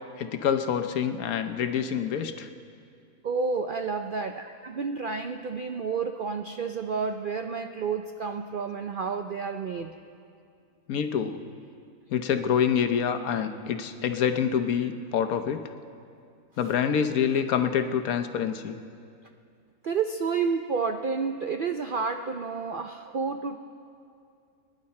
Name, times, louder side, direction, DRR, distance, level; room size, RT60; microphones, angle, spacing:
voice 1, 0.2-2.5 10.9-11.4 12.1-15.6 16.6-18.8, left 8 dB, 75° left, 8 dB, 1.2 m, -26 dB
voice 2, 3.2-9.9 19.8-23.6, right 5 dB, 65° right, 5 dB, 0.5 m, -30 dB
24.5 x 10.5 x 4.3 m, 2.4 s
omnidirectional pair, 1.5 m